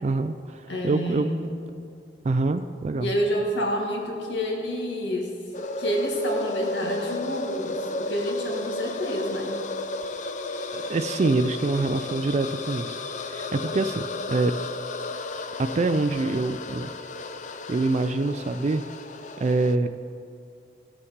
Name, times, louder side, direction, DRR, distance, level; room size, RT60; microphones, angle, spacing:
voice 1, 0.0-1.3 2.2-3.1 10.7-14.5 15.6-16.9 17.7-18.8 19.4-20.0, right 3 dB, 40° right, 9 dB, 0.3 m, -25 dB
voice 2, 0.7-1.5 3.0-5.3 5.8-9.6, equal, 90° left, 0 dB, 1.9 m, -28 dB
sound 1, 5.5-19.8, left 2 dB, 45° left, 0.5 m, -33 dB
17.0 x 7.0 x 5.1 m, 2.6 s
head